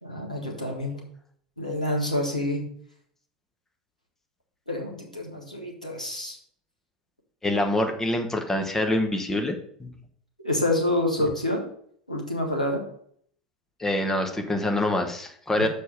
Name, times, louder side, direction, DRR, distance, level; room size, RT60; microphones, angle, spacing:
voice 1, 0.0-1.0 1.6-2.6 4.7-6.4 10.4-11.7 12.1-12.8 15.6-15.7, left 1 dB, 90° left, 0 dB, 1.5 m, -27 dB
voice 2, 7.4-9.9 13.8-15.7, left 1 dB, 10° left, 4 dB, 1.1 m, -25 dB
6.8 x 5.2 x 5.0 m, 0.63 s
figure-of-eight pair, 80°, 4 cm